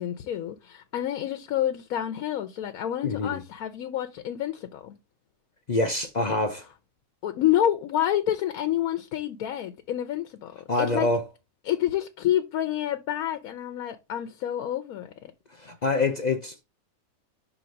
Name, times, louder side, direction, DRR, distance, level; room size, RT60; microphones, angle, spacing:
voice 1, 0.0-4.9 7.2-11.1 11.6-15.3, left 11 dB, 90° left, 1.1 m, -28 dB
voice 2, 3.0-3.4 5.7-6.6 10.7-11.2 15.6-16.6, left 2 dB, 50° left, 0.5 m, -26 dB
6.0 x 3.1 x 5.1 m
omnidirectional pair, 1.5 m